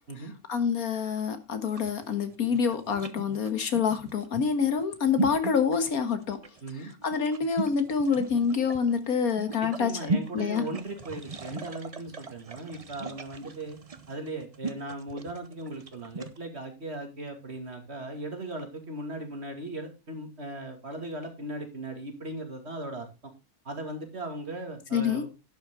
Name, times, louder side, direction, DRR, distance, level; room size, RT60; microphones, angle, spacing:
voice 1, 0.5-6.4 7.0-9.9 10.3-10.6 24.9-25.3, left 6 dB, 75° left, 1.9 m, -27 dB
sound 1, 1.6-16.4, right 3 dB, 30° right, 0.8 m, -37 dB
voice 2, 9.6-13.8 14.1-23.3 23.6-25.3, right 2 dB, 45° right, 2.8 m, -38 dB
11.5 x 8.5 x 3.8 m
omnidirectional pair, 1.5 m